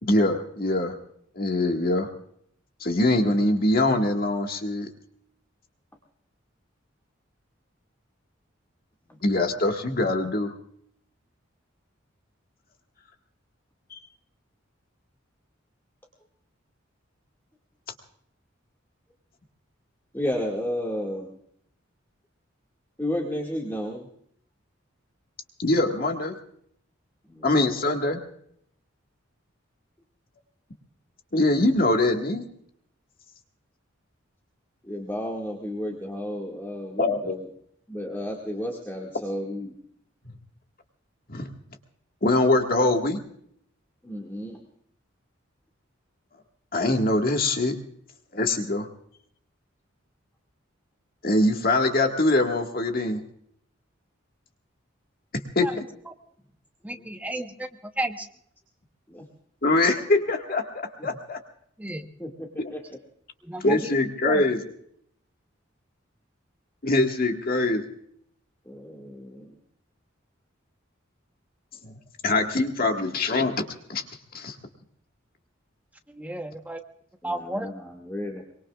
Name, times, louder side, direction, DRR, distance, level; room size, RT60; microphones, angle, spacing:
voice 1, 0.0-1.0 1.3-2.1 2.8-4.9 9.2-10.5 25.6-26.4 27.4-28.2 31.3-32.4 37.0-37.4 41.3-41.5 42.2-43.2 46.7-47.8 48.3-48.9 51.2-53.2 55.5-55.8 59.6-61.4 62.6-62.7 63.6-64.6 66.8-67.9 71.8-71.9 72.2-74.0 74.3-74.5, left 2 dB, 45° left, 3 dB, 1.8 m, -23 dB
voice 2, 20.1-21.4 23.0-24.1 27.2-27.6 34.8-37.5 37.9-39.7 44.0-44.6 56.9-57.1 59.1-59.3 61.0-61.1 62.2-63.0 68.7-69.6 77.2-78.4, equal, 10° left, -1 dB, 2.0 m, -33 dB
voice 3, 56.8-57.7 58.0-58.3 61.8-62.1 63.4-63.9 64.2-64.5 76.1-76.8 77.2-77.7, right 1 dB, 10° right, 4 dB, 1.1 m, -32 dB
24.0 x 23.5 x 2.4 m, 0.67 s
head